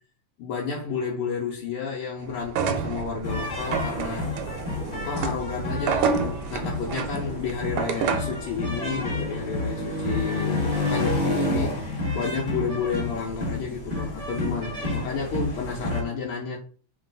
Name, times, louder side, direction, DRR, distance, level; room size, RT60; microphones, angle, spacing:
voice 1, 0.4-4.3 4.9-11.7 12.1-16.6, left 5 dB, 80° left, 1.6 m, -31 dB
sound 1, 2.4-8.4, right 7 dB, 85° right, 1.5 m, -29 dB
sound 2, 3.2-16.0, left 2 dB, 25° left, 1.1 m, -29 dB
3.7 x 2.3 x 3.9 m
omnidirectional pair, 2.4 m